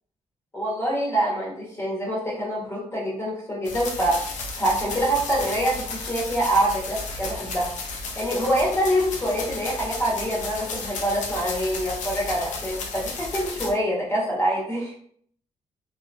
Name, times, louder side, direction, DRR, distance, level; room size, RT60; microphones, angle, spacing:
voice 1, 0.5-4.2 4.6-7.7 8.2-14.9, right 1 dB, 20° left, -5 dB, 1.1 m, -25 dB
sound 1, 3.6-13.7, left 3 dB, 85° left, 0.6 m, -34 dB
2.9 x 2.6 x 2.4 m, 0.62 s
wide cardioid pair, 140°, 12 cm